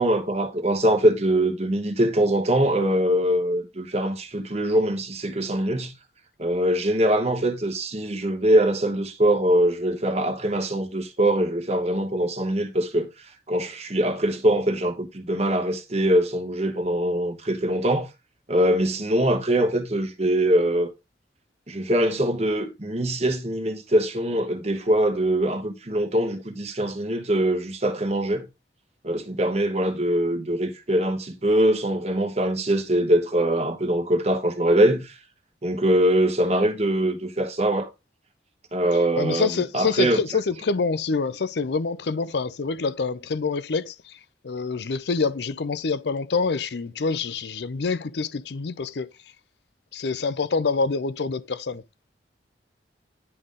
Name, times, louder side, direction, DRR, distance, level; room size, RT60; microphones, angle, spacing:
voice 1, 0.0-5.9 6.4-18.1 18.5-20.9 21.7-28.5 29.0-35.2 35.6-37.9 38.7-40.2, right 1 dB, 35° right, 1.0 m, -23 dB
voice 2, 39.2-44.2 44.4-49.1 49.9-51.8, left 4 dB, 65° left, 0.5 m, -26 dB
9.9 x 3.8 x 3.7 m
head